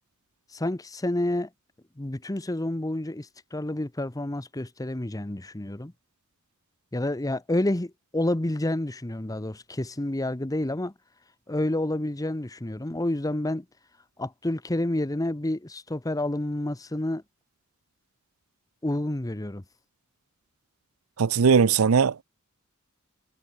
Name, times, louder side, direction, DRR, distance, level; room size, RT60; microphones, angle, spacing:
voice 1, 0.5-1.5 2.0-5.9 6.9-10.9 11.5-13.7 14.2-17.2 18.8-19.6, left 1 dB, 15° left, 0.8 m, -29 dB
voice 2, 21.2-22.2, right 6 dB, 80° right, 0.6 m, -19 dB
head